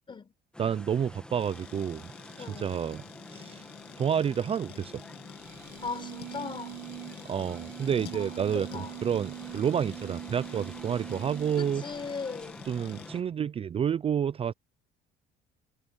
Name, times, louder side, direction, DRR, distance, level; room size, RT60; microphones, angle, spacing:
sound 1, 0.5-13.2, left 1 dB, 5° left, 1.5 m, -48 dB
voice 1, 0.6-2.0 2.4-3.0 3.3-3.6 4.0-4.9 7.2-11.8 12.7-14.5, right 8 dB, 35° right, 0.5 m, -29 dB
sound 2, 1.4-13.1, left 13 dB, 75° left, 2.2 m, -49 dB
voice 2, 2.4-2.8 5.8-6.8 8.1-9.0 11.6-12.6, left 5 dB, 30° left, 4.2 m, -39 dB
sound 3, 5.4-11.9, right 14 dB, 90° right, 2.0 m, -43 dB
cardioid pair, 110°, 17 cm